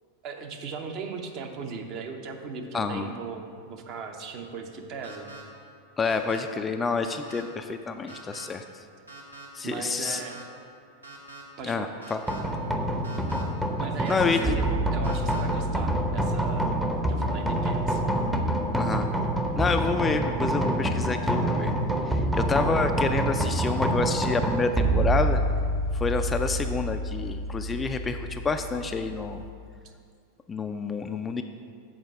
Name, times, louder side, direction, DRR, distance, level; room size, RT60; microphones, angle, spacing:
voice 1, 0.2-5.3 9.6-10.4 11.6-11.9 13.8-16.8 17.1-18.0, right 5 dB, 40° right, 4 dB, 0.8 m, -38 dB
voice 2, 2.7-3.1 6.0-8.6 9.5-10.2 11.6-12.3 14.1-14.6 18.7-19.1 19.6-21.7 22.1-25.4 26.0-29.4 30.5-31.4, left 4 dB, 15° left, 7 dB, 0.3 m, -28 dB
sound 1, 5.0-5.4 6.0-6.4 7.0-7.4 8.1-8.5 9.1-9.5 10.0-10.4 11.0-11.4 12.0-12.4 13.0-13.4 14.0-14.4 15.0-15.4, right 3 dB, 85° right, 1.1 m, -44 dB
sound 2, 12.3-29.5, right 1 dB, 5° right, 0.7 m, -27 dB
7.4 x 4.7 x 6.4 m, 2.2 s
figure-of-eight pair, 90°, 0 cm